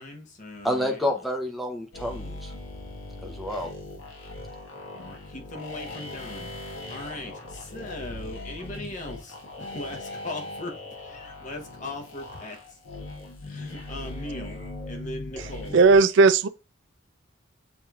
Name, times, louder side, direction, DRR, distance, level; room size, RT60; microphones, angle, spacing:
voice 1, 0.0-1.0 4.9-12.6 13.4-14.6 14.9-15.8, left 2 dB, 35° left, 0.8 m, -39 dB
voice 2, 0.6-2.5 3.2-3.7, left 1 dB, ahead, 0.6 m, -29 dB
sound 1, 1.9-16.0, left 2 dB, 70° left, 1.3 m, -39 dB
voice 3, 15.7-16.5, right 4 dB, 60° right, 0.3 m, -16 dB
7.1 x 3.1 x 2.3 m
head